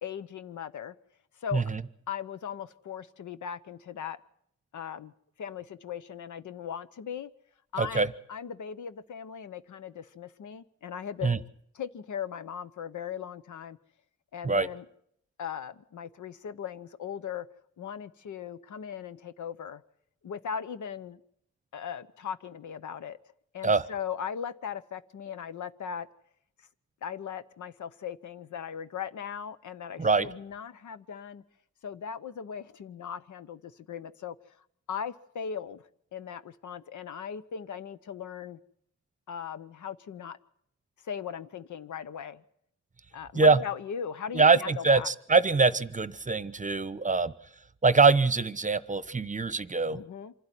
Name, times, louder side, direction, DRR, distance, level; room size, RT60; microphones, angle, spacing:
voice 1, 0.0-0.9 1.4-1.6 2.1-4.2 4.7-5.1 5.4-7.3 7.7-11.4 11.7-13.8 14.3-14.8 15.4-17.5 17.8-19.8 20.2-21.2 21.7-23.2 23.5-26.1 27.0-31.4 31.8-34.3 34.9-38.6 39.3-40.4 41.0-42.4 43.1-45.1 49.9-50.3, left 8 dB, 85° left, 14 dB, 0.9 m, -38 dB
voice 2, 7.8-8.1 11.2-11.4 14.4-14.7 23.6-23.8 30.0-30.3 43.3-43.6 44.3-47.3 47.8-50.0, right 4 dB, 25° right, 16 dB, 0.8 m, -23 dB
26.0 x 12.0 x 9.9 m, 0.72 s
wide cardioid pair, 95°, 29 cm